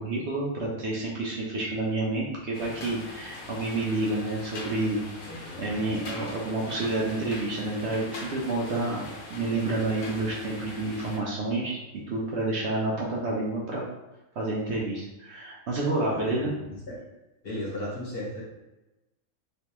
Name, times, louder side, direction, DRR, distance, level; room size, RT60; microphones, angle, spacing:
voice 1, 0.0-5.0 5.6-13.8 14.4-16.5, right 2 dB, 60° right, -4 dB, 0.8 m, -29 dB
sound 1, 2.5-11.2, left 2 dB, 70° left, 1.2 m, -42 dB
voice 2, 5.3-5.9 16.1-16.5 16.9-17.0 17.4-18.4, left 1 dB, 45° left, -6 dB, 1.2 m, -36 dB
3.2 x 3.2 x 2.9 m, 1.0 s
omnidirectional pair, 1.5 m